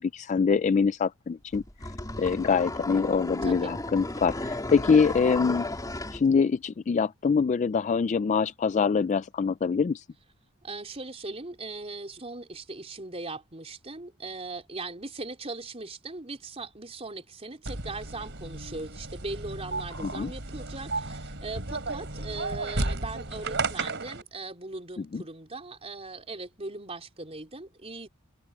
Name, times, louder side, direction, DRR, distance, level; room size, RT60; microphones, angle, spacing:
voice 1, 0.0-1.6 2.2-5.7 6.1-10.0 20.1-20.3 25.1-25.2, left 5 dB, 35° left, 0.3 m, -24 dB
sound 1, 1.5-6.2, left 2 dB, 15° left, 3.3 m, -34 dB
voice 2, 3.4-3.7 10.6-28.1, right 3 dB, 30° right, 4.1 m, -39 dB
sound 2, 17.7-24.2, right 3 dB, 55° right, 4.3 m, -33 dB
head